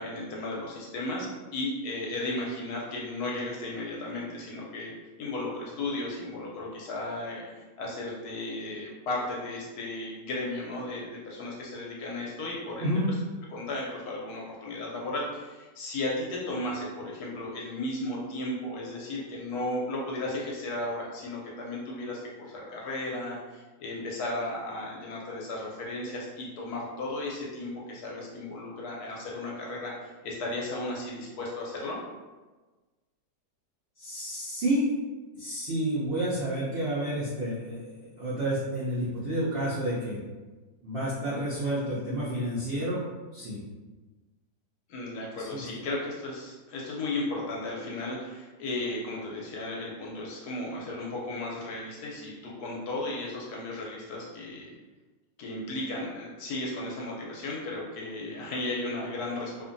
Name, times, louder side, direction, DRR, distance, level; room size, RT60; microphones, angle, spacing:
voice 1, 0.0-4.9 5.2-13.0 13.5-32.0 44.9-54.7 55.4-59.6, left 2 dB, 70° left, -3 dB, 1.0 m, -35 dB
voice 2, 12.8-13.1 34.0-34.9 35.3-40.2 40.8-43.0 43.3-43.6 45.4-45.6, right 1 dB, 85° right, -9 dB, 0.5 m, -30 dB
2.6 x 2.5 x 2.5 m, 1.3 s
omnidirectional pair, 1.9 m